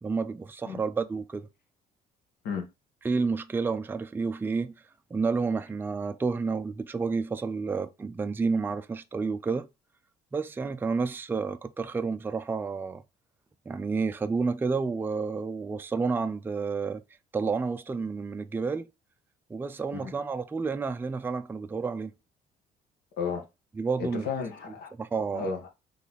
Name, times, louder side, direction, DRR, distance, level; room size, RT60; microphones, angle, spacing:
voice 1, 0.0-1.5 3.0-4.7 5.1-9.7 10.3-13.0 13.7-17.0 17.3-18.9 19.5-22.1 23.8-24.3 25.0-25.5, right 4 dB, 10° right, 0.4 m, -30 dB
voice 2, 24.0-24.9 25.3-25.7, left 5 dB, 70° left, 1.4 m, -33 dB
4.1 x 3.2 x 4.0 m
cardioid pair, 110°, 17 cm